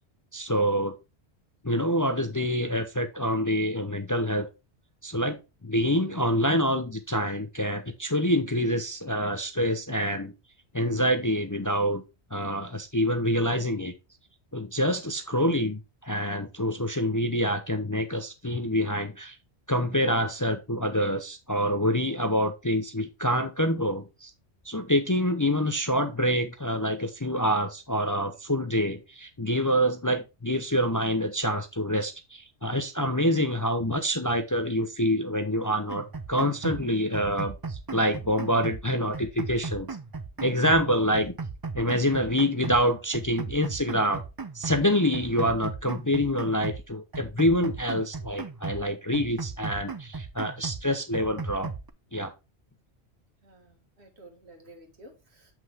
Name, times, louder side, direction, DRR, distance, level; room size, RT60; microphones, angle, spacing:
voice 1, 0.3-1.0 1.6-4.5 5.0-10.3 10.7-12.0 12.3-13.9 14.5-19.4 19.7-24.3 24.7-39.9 40.4-41.4 41.7-44.2 44.5-51.7 52.1-52.3, equal, 20° left, 7 dB, 0.7 m, -26 dB
sound 1, 35.9-36.9 37.1-38.9 39.1-40.9 41.1-42.9 43.1-44.9 45.1-46.9 47.1-48.9 49.1-50.9 51.1-51.9, right 4 dB, 30° right, 0.4 m, -37 dB
voice 2, 53.4-55.5, right 1 dB, 70° right, 4 dB, 2.2 m, -52 dB
7.8 x 6.0 x 3.5 m, 0.26 s
omnidirectional pair, 1.1 m